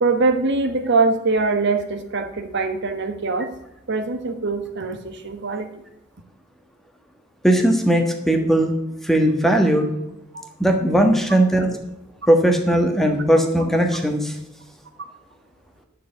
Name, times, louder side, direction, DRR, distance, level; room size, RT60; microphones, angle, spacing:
voice 1, 0.0-3.5 3.9-5.8 10.3-10.4, right 3 dB, 60° right, 7 dB, 1.2 m, -23 dB
voice 2, 7.4-8.7 9.0-9.9 10.6-11.7 12.3-14.4, right 1 dB, ahead, 4 dB, 1.4 m, -18 dB
10.5 x 6.6 x 8.0 m, 0.87 s
head